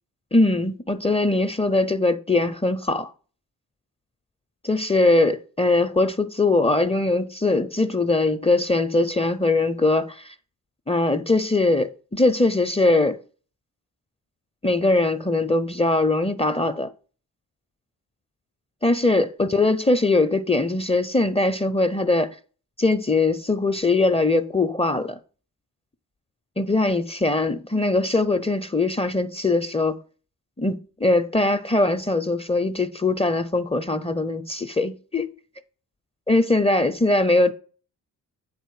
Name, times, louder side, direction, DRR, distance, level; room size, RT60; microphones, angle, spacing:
voice 1, 0.3-3.1 4.6-10.3 10.9-13.2 14.6-16.9 18.8-22.3 22.8-25.2 26.6-30.0 30.6-35.3 36.3-37.5, left 2 dB, 15° left, 0.6 m, -21 dB
7.9 x 4.2 x 4.8 m
supercardioid pair, 50°, 40 cm